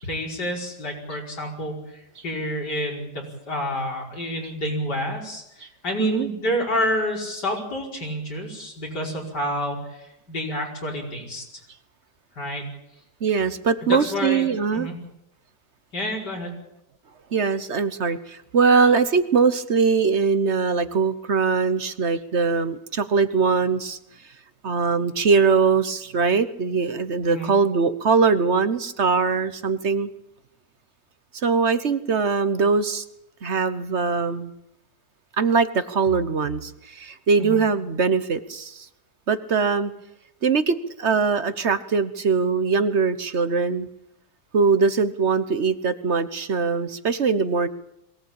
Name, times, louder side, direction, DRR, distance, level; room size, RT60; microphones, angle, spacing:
voice 1, 0.0-11.5 12.4-12.6 13.8-15.0 15.9-16.5 27.3-27.5 37.4-37.6, equal, 80° left, 0 dB, 5.8 m, -29 dB
voice 2, 6.0-6.3 13.2-14.9 17.3-24.0 24.6-30.1 31.4-33.0 33.4-34.5 35.4-38.9 39.3-39.9 40.4-43.9 44.5-47.7, right 5 dB, 45° right, 12 dB, 1.2 m, -21 dB
22.0 x 18.0 x 8.8 m, 0.83 s
omnidirectional pair, 1.8 m